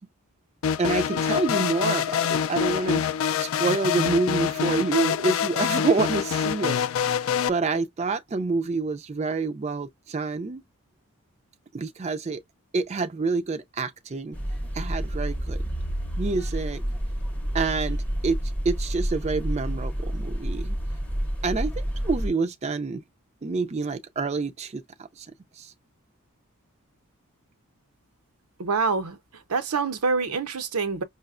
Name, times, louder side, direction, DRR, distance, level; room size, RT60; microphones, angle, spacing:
sound 1, 0.6-7.5, left 8 dB, 65° left, 0.3 m, -25 dB
voice 1, 0.8-3.0 3.4-7.2 7.5-10.6 11.7-12.4 12.7-14.4 14.7-15.6 16.2-16.8 17.5-20.8 21.4-23.0 23.4-25.7, right 4 dB, 30° right, 0.4 m, -27 dB
sound 2, 14.3-22.3, equal, 5° left, 0.6 m, -29 dB
voice 2, 28.6-29.2 29.5-31.0, right 4 dB, 90° right, 0.7 m, -26 dB
5.5 x 2.1 x 2.4 m
head